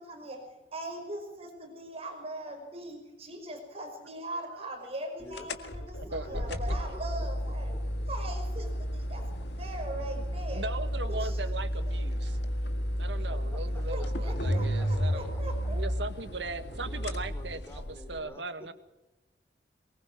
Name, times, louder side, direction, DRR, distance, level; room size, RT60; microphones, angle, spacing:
voice 1, 0.0-7.7 8.1-10.7 11.1-11.4 13.9-15.8, right 1 dB, 35° right, 4 dB, 5.3 m, -41 dB
voice 2, 5.2-5.5 6.0-7.3 7.7-8.1 13.3-13.6 14.0-14.9 16.7-18.7, left 1 dB, 15° left, 5 dB, 3.2 m, -49 dB
sound 1, 5.3-18.2, equal, 80° left, 1.8 m, -32 dB
voice 3, 6.1-6.6 10.0-12.4 13.0-15.4 15.7-17.6 18.1-18.7, right 3 dB, 85° right, 10 dB, 1.7 m, -39 dB
23.5 x 20.5 x 6.2 m, 1.0 s
head